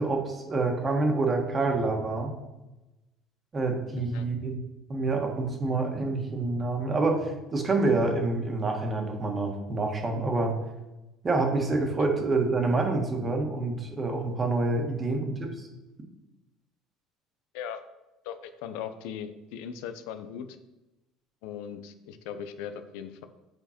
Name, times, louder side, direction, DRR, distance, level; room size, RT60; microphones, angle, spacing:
voice 1, 0.0-2.3 3.5-4.6 4.9-10.5 11.2-15.7, right 3 dB, 25° right, 2 dB, 1.5 m, -27 dB
voice 2, 18.2-20.6 21.4-23.3, left 8 dB, 80° left, 9 dB, 0.6 m, -39 dB
7.4 x 5.1 x 4.4 m, 1.0 s
cardioid pair, 125°, 0 cm